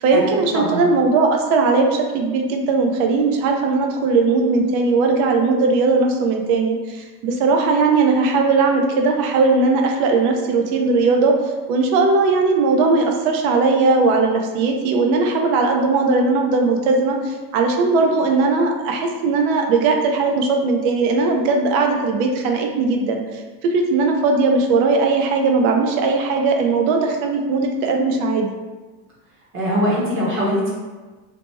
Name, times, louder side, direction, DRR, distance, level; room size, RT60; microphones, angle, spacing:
voice 1, 0.0-28.5, right 3 dB, 75° right, 3 dB, 0.6 m, -18 dB
voice 2, 29.5-30.7, equal, 30° right, -6 dB, 0.8 m, -21 dB
2.8 x 2.0 x 3.3 m, 1.3 s
cardioid pair, 160°, 43 cm